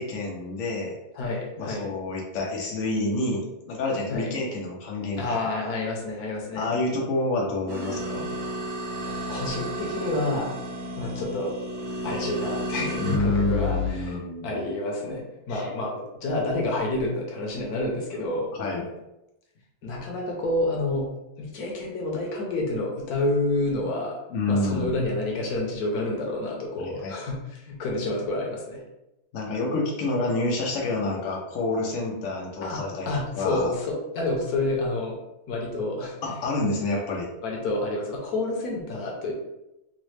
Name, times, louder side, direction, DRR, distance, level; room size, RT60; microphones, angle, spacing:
voice 1, 0.0-1.0 1.6-5.3 6.5-8.3 13.0-14.6 15.5-15.7 18.6-18.9 24.3-25.0 26.8-27.1 29.3-33.1 33.3-33.7 36.2-37.3, left 2 dB, 90° left, -2 dB, 0.7 m, -28 dB
voice 2, 1.2-1.8 4.1-4.3 5.2-6.7 9.3-10.5 11.0-11.5 12.0-14.2 14.4-18.5 19.8-21.1 21.4-24.2 24.5-28.8 32.6-35.2 35.5-36.2 37.4-39.3, left 2 dB, 65° left, -1 dB, 1.0 m, -29 dB
sound 1, 7.7-13.9, left 2 dB, 85° right, 1.6 m, -31 dB
3.9 x 2.1 x 3.1 m, 0.92 s
omnidirectional pair, 2.3 m